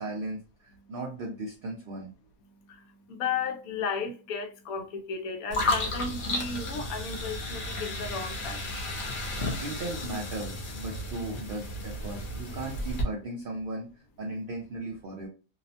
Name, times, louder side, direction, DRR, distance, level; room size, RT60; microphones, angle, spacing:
voice 1, 0.0-2.1 9.6-15.3, right 2 dB, 85° right, 0.4 m, -37 dB
voice 2, 2.5-9.6, left 5 dB, 75° left, 1.0 m, -35 dB
sound 1, 5.5-13.0, left 2 dB, 50° left, 0.6 m, -33 dB
2.8 x 2.0 x 2.7 m
omnidirectional pair, 1.5 m